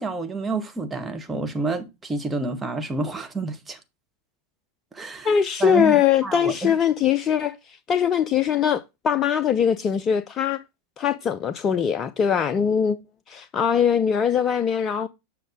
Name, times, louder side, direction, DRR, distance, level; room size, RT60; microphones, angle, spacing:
voice 1, 0.0-3.8 4.9-6.8, right 3 dB, 15° right, 1.1 m, -29 dB
voice 2, 5.2-10.6 11.0-13.0 13.3-15.1, left 8 dB, 25° left, 0.4 m, -22 dB
7.7 x 5.9 x 3.7 m
figure-of-eight pair, 90°, 0 cm